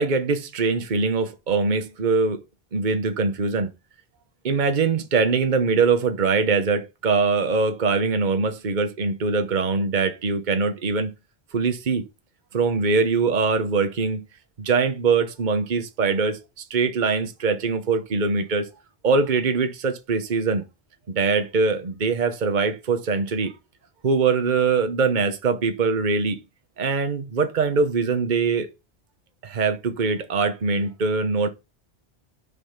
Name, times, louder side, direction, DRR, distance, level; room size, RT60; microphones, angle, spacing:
voice 1, 0.0-2.4 2.7-3.7 4.4-11.1 11.5-12.0 12.5-14.3 14.6-16.4 16.7-18.7 19.0-20.6 21.1-23.5 24.0-26.4 26.8-28.7 29.4-31.5, right 4 dB, 50° right, 1.1 m, -22 dB
9.8 x 5.5 x 5.8 m
omnidirectional pair, 1.1 m